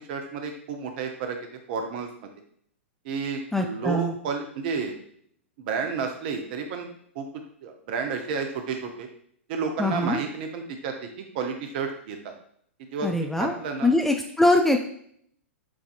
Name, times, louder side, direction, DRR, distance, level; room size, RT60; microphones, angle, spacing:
voice 1, 0.1-1.4 1.7-2.1 3.0-4.9 5.6-6.9 7.1-7.3 7.6-9.1 9.5-11.1 11.3-12.3 12.9-13.9, right 5 dB, 45° right, 5 dB, 0.8 m, -31 dB
voice 2, 3.5-4.1 9.8-10.2 13.0-13.6 13.8-14.8, left 1 dB, 5° left, 3 dB, 0.4 m, -22 dB
7.3 x 2.7 x 2.5 m, 0.64 s
figure-of-eight pair, 105°, 7 cm